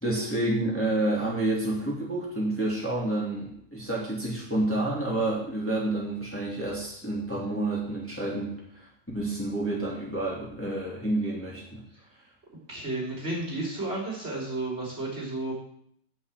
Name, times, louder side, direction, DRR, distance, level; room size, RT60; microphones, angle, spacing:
voice 1, 0.0-8.9 9.1-11.8, right 2 dB, 5° left, -5 dB, 2.9 m, -29 dB
voice 2, 12.7-15.5, right 2 dB, 35° right, -3 dB, 3.8 m, -32 dB
11.0 x 5.8 x 8.4 m, 0.69 s
omnidirectional pair, 1.9 m